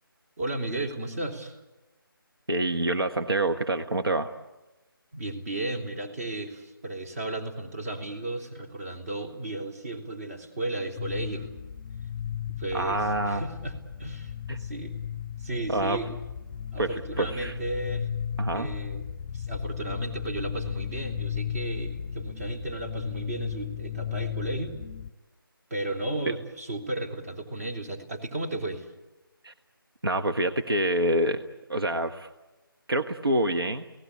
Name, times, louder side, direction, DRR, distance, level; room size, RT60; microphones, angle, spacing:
voice 1, 0.4-1.6 5.1-11.5 12.5-14.3 14.6-15.0 15.4-16.1 16.7-18.1 18.5-19.1 19.3-24.8 25.7-28.9, right 2 dB, 40° right, 1 dB, 3.5 m, -34 dB
voice 2, 2.5-4.3 12.7-13.4 14.5-14.6 15.7-16.0 16.8-17.5 18.4-18.7 26.2-26.3 29.4-29.5 30.0-31.4 31.7-32.3 32.9-33.8, right 1 dB, 80° right, 4 dB, 1.5 m, -26 dB
sound 1, 11.0-25.1, left 8 dB, 20° left, 0.8 m, -35 dB
29.0 x 18.0 x 8.5 m, 1.1 s
figure-of-eight pair, 155°, 12 cm